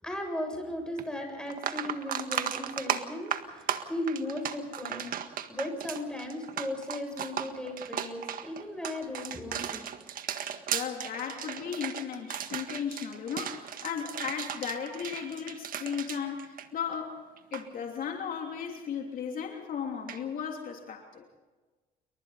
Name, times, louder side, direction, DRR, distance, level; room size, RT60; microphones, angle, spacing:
voice 1, 0.0-5.1 5.5-9.8, left 1 dB, 5° left, 2 dB, 7.3 m, -36 dB
sound 1, 1.0-1.1 1.5-17.1 17.4-17.6 20.1-20.2, right 9 dB, 55° right, 1.7 m, -36 dB
voice 2, 10.4-17.2 17.5-21.2, left 7 dB, 55° left, 1 dB, 3.1 m, -36 dB
28.5 x 23.5 x 4.2 m, 1.3 s
cardioid pair, 110°, 17 cm